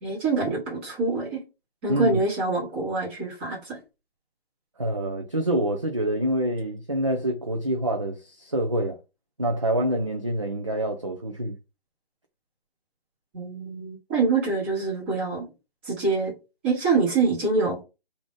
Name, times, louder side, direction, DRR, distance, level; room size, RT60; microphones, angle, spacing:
voice 1, 0.0-1.4 1.8-3.8 13.3-15.5 15.8-16.3 16.6-17.8, right 4 dB, 10° right, 0.9 m, -25 dB
voice 2, 1.9-2.2 4.8-9.0 9.4-11.6, right 1 dB, 35° right, 0.4 m, -26 dB
4.8 x 2.6 x 3.5 m
hypercardioid pair, 165°, 31 cm